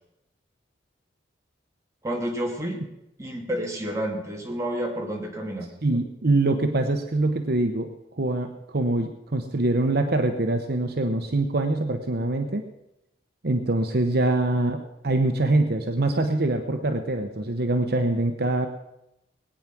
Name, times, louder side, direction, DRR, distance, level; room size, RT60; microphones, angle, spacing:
voice 1, 2.0-2.8 3.2-5.7, right 1 dB, 15° right, 0 dB, 2.6 m, -30 dB
voice 2, 5.8-7.9 8.2-12.6 13.4-18.7, right 2 dB, 55° right, 6 dB, 0.9 m, -24 dB
20.0 x 9.1 x 6.0 m, 0.89 s
head